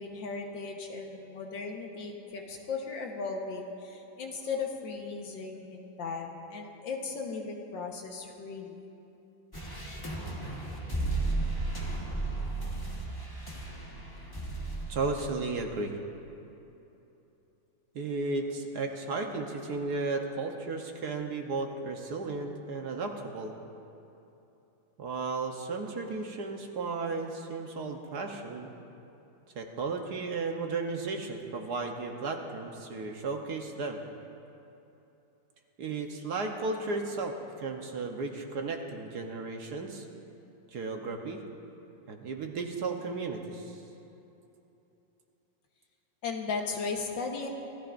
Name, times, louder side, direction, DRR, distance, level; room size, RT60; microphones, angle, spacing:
voice 1, 0.0-8.8 46.2-47.5, left 4 dB, 70° left, 2 dB, 1.8 m, -36 dB
sound 1, 9.5-15.3, right 2 dB, 15° left, 1.1 m, -34 dB
voice 2, 14.9-16.0 17.9-23.5 25.0-28.7 29.5-34.0 35.8-40.1 40.7-41.4 42.1-43.8, right 3 dB, 60° right, 3 dB, 1.4 m, -34 dB
27.5 x 14.0 x 2.6 m, 3.0 s
omnidirectional pair, 2.1 m